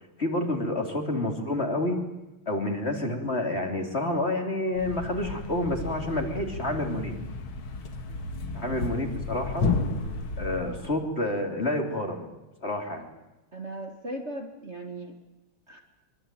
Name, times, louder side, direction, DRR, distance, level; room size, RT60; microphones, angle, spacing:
voice 1, 0.2-2.0 2.5-7.2 8.5-9.7 10.4-12.3 12.6-13.1, left 1 dB, 30° left, 3 dB, 3.5 m, -29 dB
Thump thud, 4.7-10.9, left 3 dB, 70° left, 2.8 m, -33 dB
voice 2, 13.5-15.1 15.7-15.8, right 1 dB, 30° right, 3 dB, 2.3 m, -37 dB
24.5 x 24.5 x 9.1 m, 1.0 s
omnidirectional pair, 2.4 m